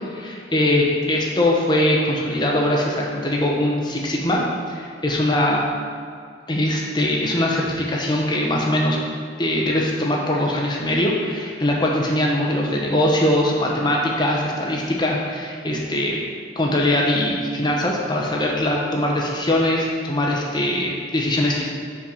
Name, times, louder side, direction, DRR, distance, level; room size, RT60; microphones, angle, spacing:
voice 1, 0.0-4.4 4.7-5.6 6.5-9.0 9.4-16.2 16.6-21.6, left 1 dB, 25° left, -2 dB, 1.0 m, -21 dB
6.0 x 4.8 x 6.2 m, 2.2 s
head